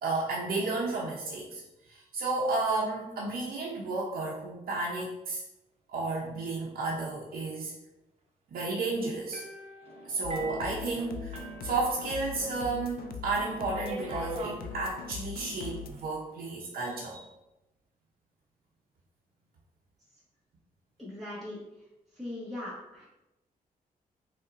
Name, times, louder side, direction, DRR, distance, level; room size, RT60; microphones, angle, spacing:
voice 1, 0.0-1.6 1.9-5.4 5.9-7.7 8.5-9.4 10.1-17.2, right 3 dB, 80° right, -4 dB, 0.8 m, -32 dB
sound 1, 9.3-12.5 12.8-12.9 13.7-14.6 15.5-16.0, right 1 dB, 45° right, 0.9 m, -41 dB
sound 2, 10.2-15.9, left 5 dB, 90° left, 0.5 m, -41 dB
voice 2, 21.0-21.9 22.1-23.0, left 1 dB, ahead, -10 dB, 1.2 m, -40 dB
5.4 x 3.6 x 2.5 m, 0.95 s
cardioid pair, 120°, 15 cm